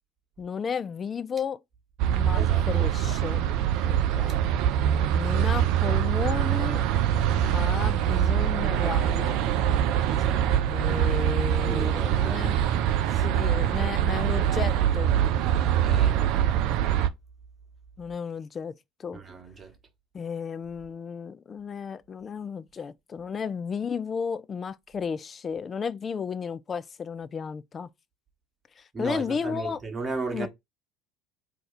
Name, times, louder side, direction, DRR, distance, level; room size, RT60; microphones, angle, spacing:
voice 1, 0.4-1.6 2.1-3.5 3.8-4.4 5.1-6.8 7.4-9.4 10.7-12.9 13.1-15.1 18.0-18.7 19.0-19.2 20.1-27.9 28.8-29.8 30.3-30.5, left 6 dB, 30° left, 0.3 m, -33 dB
sound 1, 2.0-17.1, right 10 dB, 60° right, 0.3 m, -24 dB
voice 2, 2.3-2.9 10.1-10.6 11.6-12.5 15.8-16.3 19.1-19.7 28.9-30.5, right 3 dB, 30° right, 1.1 m, -36 dB
2.7 x 2.3 x 4.1 m
hypercardioid pair, 65°, 0 cm